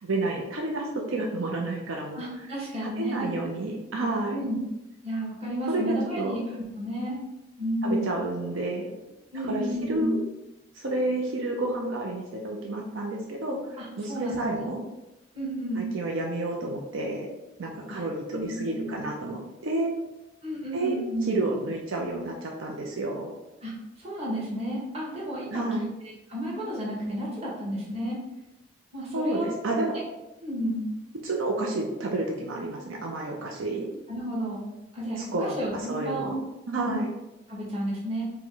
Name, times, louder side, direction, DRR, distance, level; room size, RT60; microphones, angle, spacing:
voice 1, 0.0-2.2 2.8-4.5 5.7-6.3 7.8-8.9 9.5-10.2 10.7-13.6 14.0-14.8 15.8-17.3 17.6-19.9 20.7-21.0 21.3-23.3 25.5-25.9 29.1-30.0 31.2-33.9 35.2-36.4 36.7-37.1, right 2 dB, 80° right, 0 dB, 0.6 m, -30 dB
voice 2, 2.1-3.3 4.3-4.7 5.0-7.2 7.6-8.1 9.3-10.2 13.8-14.7 15.3-15.9 17.9-18.0 18.3-19.0 20.4-21.3 23.6-28.2 28.9-29.5 29.9-30.0 30.4-30.9 34.1-36.4 36.7-37.0 37.5-38.2, equal, 30° right, -6 dB, 1.4 m, -32 dB
4.9 x 2.2 x 3.8 m, 0.97 s
head